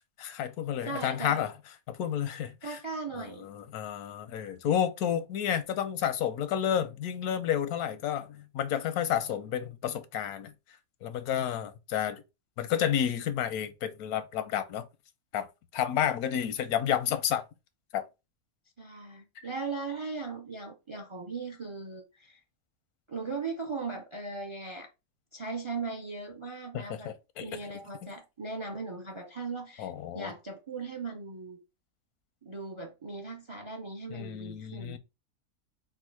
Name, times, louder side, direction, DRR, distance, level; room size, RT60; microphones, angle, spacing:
voice 1, 0.2-1.5 1.9-2.8 3.2-10.5 11.0-12.2 12.6-14.8 15.3-15.5 15.7-17.4 17.9-18.0 19.4-19.5 26.7-27.5 28.0-28.1 29.8-30.3 34.1-35.0, left 9 dB, 90° left, 1.2 m, -31 dB
voice 2, 0.9-1.5 2.6-3.5 18.8-22.4 23.1-24.9 25.3-27.1 27.4-31.6 32.4-35.0, right 4 dB, 40° right, 0.4 m, -38 dB
4.6 x 2.3 x 4.6 m
omnidirectional pair, 1.5 m